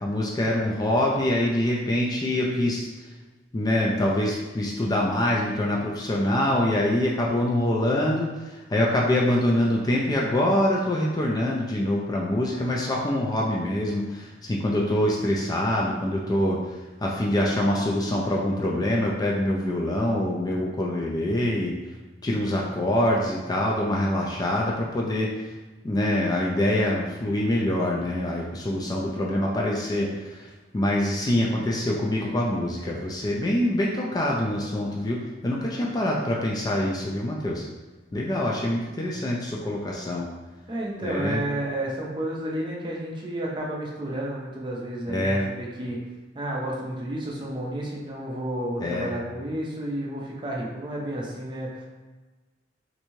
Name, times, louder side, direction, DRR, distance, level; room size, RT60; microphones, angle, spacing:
voice 1, 0.0-2.9 3.5-16.6 17.0-21.7 22.2-25.5 25.8-37.6 38.1-40.3 41.0-41.4 45.1-45.4 48.8-49.1, left 1 dB, 20° left, -2 dB, 0.3 m, -25 dB
voice 2, 40.7-46.0 46.3-51.8, right 1 dB, 25° right, -3 dB, 0.6 m, -31 dB
3.3 x 2.6 x 3.0 m, 1.2 s
head